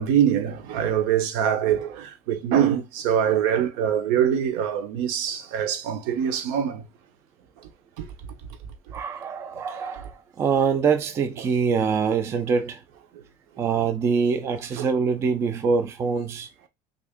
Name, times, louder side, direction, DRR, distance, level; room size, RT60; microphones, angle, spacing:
voice 1, 0.0-6.9 8.0-8.1 14.8-14.9, right 9 dB, 70° right, 0.7 m, -24 dB
voice 2, 8.9-12.8 13.6-16.5, right 5 dB, 20° right, 0.3 m, -24 dB
3.5 x 2.5 x 3.5 m
cardioid pair, 175°, 13 cm